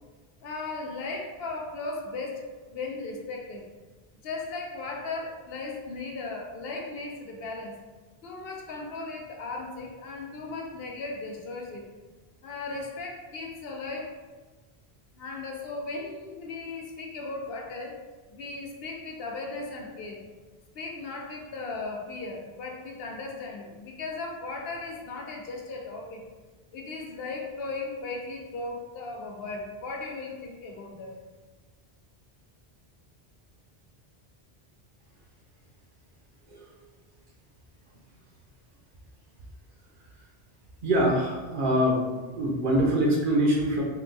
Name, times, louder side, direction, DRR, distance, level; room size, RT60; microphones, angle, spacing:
voice 1, 0.4-3.7 4.2-7.7 8.2-11.8 12.4-14.1 15.2-18.0 18.3-20.2 20.7-26.2 26.7-31.1, left 3 dB, 75° left, 1 dB, 0.8 m, -37 dB
voice 2, 40.8-42.0 42.3-43.8, equal, 60° right, -1 dB, 0.7 m, -24 dB
3.8 x 2.3 x 2.6 m, 1.3 s
omnidirectional pair, 1.0 m